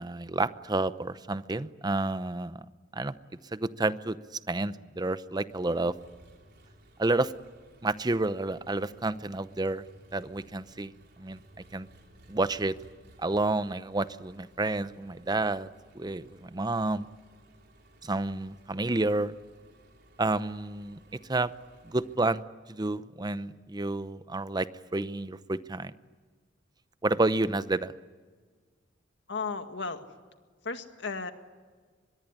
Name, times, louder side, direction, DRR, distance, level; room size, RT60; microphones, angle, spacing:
voice 1, 0.0-2.6 2.9-3.1 3.5-4.2 4.5-6.0 7.0-7.3 7.8-9.8 10.1-10.9 11.2-11.4 11.7-11.9 12.3-12.8 13.2-15.7 15.9-17.1 18.0-19.3 20.2-21.0 21.3-21.5 21.8-22.4 22.7-25.9 27.0-27.9, right 2 dB, 20° right, 14 dB, 0.7 m, -30 dB
Engine, 5.5-22.2, right 1 dB, 60° right, 5.0 m, -58 dB
voice 2, 29.3-30.1 30.6-31.3, left 4 dB, 65° left, 7 dB, 2.0 m, -34 dB
24.0 x 21.5 x 9.9 m, 1.5 s
head